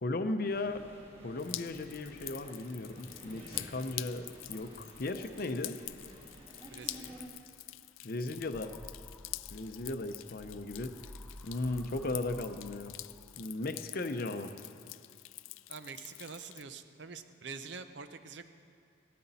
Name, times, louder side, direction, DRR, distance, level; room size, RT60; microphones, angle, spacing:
voice 1, 0.0-0.8 1.2-5.8 8.0-8.8 9.5-11.0 11.4-13.0 13.4-14.5, left 2 dB, 50° left, 8 dB, 0.7 m, -36 dB
sound 1, 0.5-7.3, right 1 dB, 30° right, 2.0 m, -52 dB
Drip, 1.4-16.6, left 18 dB, 85° left, 0.3 m, -46 dB
voice 2, 6.7-7.1 15.7-18.5, right 5 dB, 60° right, 10 dB, 0.6 m, -46 dB
sound 2, 8.3-13.6, equal, 5° left, 0.5 m, -52 dB
17.5 x 13.0 x 4.2 m, 2.4 s
head